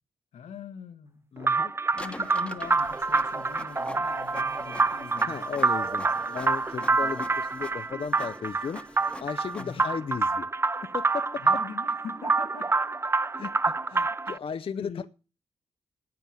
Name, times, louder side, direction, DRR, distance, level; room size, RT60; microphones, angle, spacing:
voice 1, 0.3-1.2 1.9-6.2 6.8-7.2 9.6-9.8 11.4-12.7 14.3-14.4 14.7-15.1, left 6 dB, 80° left, 1.3 m, -43 dB
voice 2, 1.3-1.7 5.2-10.5 10.9-11.4 13.4-15.1, left 6 dB, 55° left, 0.6 m, -36 dB
sound 1, 1.4-14.4, right 3 dB, 20° right, 0.5 m, -27 dB
Printer, 1.9-9.9, left 1 dB, 10° left, 1.1 m, -45 dB
9.2 x 8.7 x 7.5 m
supercardioid pair, 45°, 12 cm